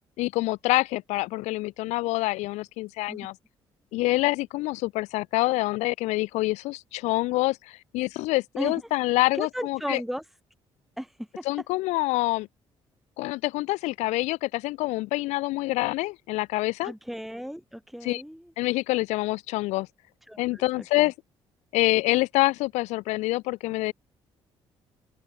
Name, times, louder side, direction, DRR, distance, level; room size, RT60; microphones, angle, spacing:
voice 1, 0.2-3.4 3.9-10.0 11.5-12.5 13.2-16.9 18.0-18.2 18.6-19.9 20.4-21.1 21.7-23.9, left 20 dB, 85° left, 2.0 m, -26 dB
voice 2, 8.6-8.9 9.3-10.3 11.0-11.5 16.8-18.5 20.2-21.1, equal, ahead, 4.4 m, -36 dB
open air
supercardioid pair, 55°, 12 cm